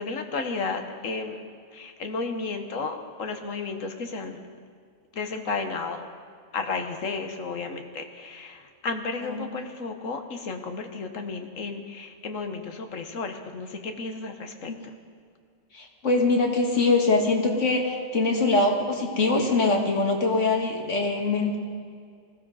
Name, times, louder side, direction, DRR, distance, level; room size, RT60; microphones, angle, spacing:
voice 1, 0.0-1.4 1.7-4.4 5.1-6.1 6.5-14.9, left 4 dB, 85° left, 6 dB, 1.6 m, -33 dB
voice 2, 15.7-21.6, left 3 dB, 70° left, 1 dB, 2.1 m, -23 dB
20.0 x 15.5 x 4.1 m, 2.2 s
omnidirectional pair, 1.3 m